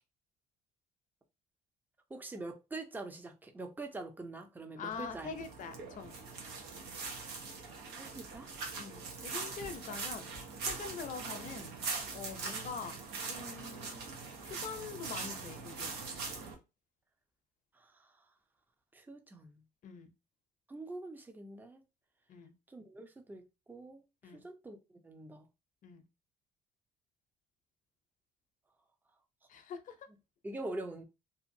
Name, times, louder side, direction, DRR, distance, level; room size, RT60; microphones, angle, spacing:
voice 1, 2.1-5.3 7.9-8.5 17.8-17.9 18.9-19.6 20.7-21.8 22.7-24.0 24.4-24.8 25.0-25.4 30.4-31.0, right 2 dB, 10° right, 0.5 m, -44 dB
voice 2, 4.8-6.2 8.8-10.2 10.6-11.7 12.1-13.0 13.3-14.1 14.4-16.0 19.8-20.1 22.3-22.5 24.2-24.4 25.8-26.0 29.5-30.1, left 6 dB, 50° left, 0.6 m, -44 dB
sound 1, 4.9-16.5, right 4 dB, 85° right, 0.9 m, -42 dB
2.7 x 2.4 x 2.6 m
cardioid pair, 110°, 17 cm